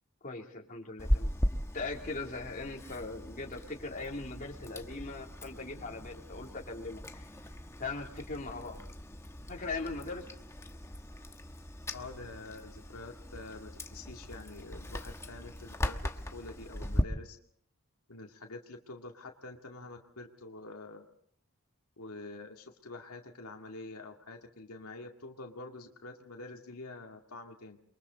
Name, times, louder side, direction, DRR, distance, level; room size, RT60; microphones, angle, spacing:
voice 1, 0.2-1.3 1.7-7.3 7.8-8.8 9.5-10.3, left 3 dB, 40° left, -1 dB, 3.2 m, -40 dB
Chewing mastication, 1.0-17.0, equal, 10° left, 1.2 m, -38 dB
voice 2, 11.9-16.0 16.3-17.4 18.1-21.1 22.0-27.8, left 2 dB, 85° left, 2 dB, 2.2 m, -47 dB
29.0 x 23.0 x 4.1 m, 0.65 s
head